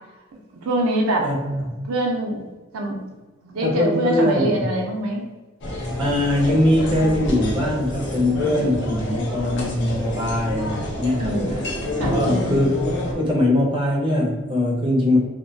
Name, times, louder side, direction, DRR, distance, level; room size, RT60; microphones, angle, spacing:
voice 1, 0.6-2.5 2.7-3.1 3.4-5.3 6.1-6.2 11.2-11.6 12.0-12.2, right 1 dB, 90° right, 0 dB, 0.5 m, -24 dB
voice 2, 1.2-1.6 3.6-4.4 6.0-11.4 12.1-12.7 12.9-15.2, left 1 dB, 25° right, -3 dB, 0.5 m, -21 dB
sound 1, 5.6-13.1, left 1 dB, 60° left, 0.5 m, -28 dB
2.3 x 2.2 x 2.6 m, 1.2 s
head